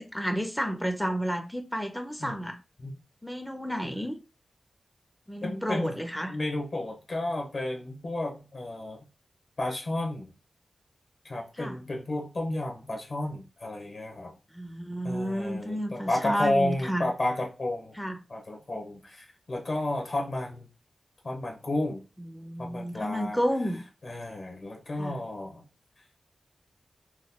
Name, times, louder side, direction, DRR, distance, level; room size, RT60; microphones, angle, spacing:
voice 1, 0.0-2.6 3.2-4.2 5.3-6.4 11.6-11.8 14.5-17.1 17.9-18.2 22.2-23.8 25.0-25.2, equal, 5° left, 0.4 m, -31 dB
voice 2, 5.4-5.9 6.3-9.0 9.6-10.3 11.2-14.3 15.0-17.9 18.3-20.7 21.2-22.0 22.6-23.4 24.0-25.6, left 1 dB, 60° left, 0.9 m, -32 dB
2.9 x 2.2 x 3.6 m
wide cardioid pair, 115°, 0 cm